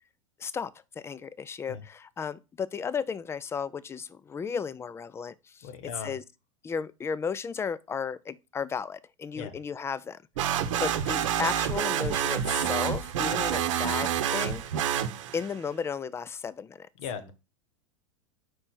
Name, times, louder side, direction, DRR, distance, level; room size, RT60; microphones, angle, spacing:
voice 1, 0.4-6.2 6.6-10.2 10.8-14.6 15.3-16.9, left 6 dB, 15° left, 0.4 m, -34 dB
voice 2, 5.6-6.2 9.4-9.6 17.0-17.3, left 6 dB, 55° left, 1.2 m, -38 dB
sound 1, 10.4-15.6, right 9 dB, 65° right, 0.9 m, -28 dB
5.0 x 4.3 x 4.4 m
hypercardioid pair, 95°, 17 cm